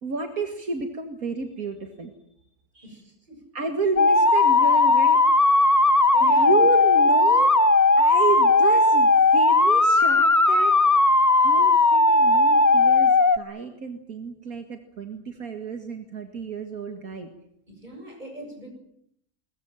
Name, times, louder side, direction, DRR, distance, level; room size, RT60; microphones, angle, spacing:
voice 1, 0.0-2.1 2.7-3.0 3.5-5.2 6.2-7.6 8.0-10.8 11.4-17.3, right 4 dB, 75° right, 5 dB, 2.5 m, -31 dB
voice 2, 2.8-3.5 5.8-6.5 17.7-18.7, right 1 dB, 30° right, 3 dB, 8.1 m, -42 dB
sound 1, 4.0-13.4, left 2 dB, 15° left, 0.7 m, -17 dB
22.0 x 21.5 x 9.1 m, 0.73 s
omnidirectional pair, 1.5 m